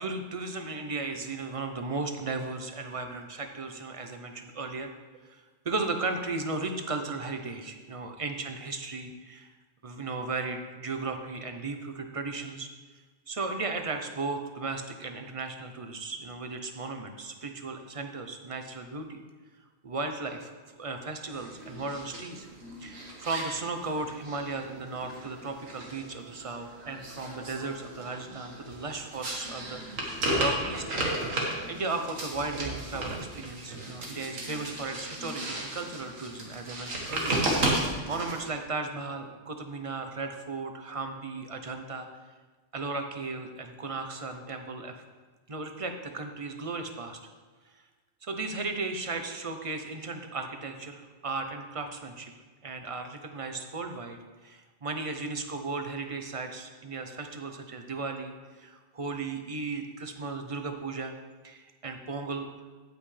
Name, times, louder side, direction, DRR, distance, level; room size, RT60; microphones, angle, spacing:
voice 1, 0.0-4.9 5.3-9.5 9.8-12.7 13.3-19.2 19.8-20.5 20.8-22.5 22.8-30.8 31.7-37.3 38.1-42.1 42.7-44.9 45.5-47.2 48.2-52.3 52.6-61.1 61.4-62.5, right 3 dB, 35° right, 6 dB, 0.7 m, -35 dB
sound 1, 21.3-38.5, right 1 dB, 85° right, 2.0 m, -34 dB
16.5 x 5.6 x 3.3 m, 1.4 s
omnidirectional pair, 1.3 m